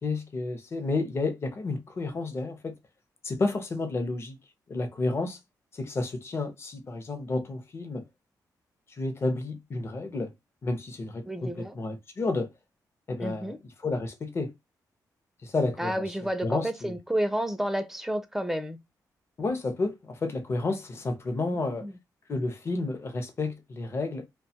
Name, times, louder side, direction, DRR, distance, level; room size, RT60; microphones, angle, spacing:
voice 1, 0.0-2.7 3.2-4.4 4.7-5.4 5.7-8.0 9.0-10.3 10.6-12.5 13.1-13.6 13.8-14.5 15.4-16.0 16.4-16.9 19.4-21.9 22.3-24.3, left 3 dB, 35° left, 0.6 m, -31 dB
voice 2, 11.2-11.8 13.2-13.6 15.8-18.8 21.4-22.0, right 1 dB, 5° right, 0.4 m, -31 dB
2.5 x 2.3 x 2.7 m
cardioid pair, 110°, 7 cm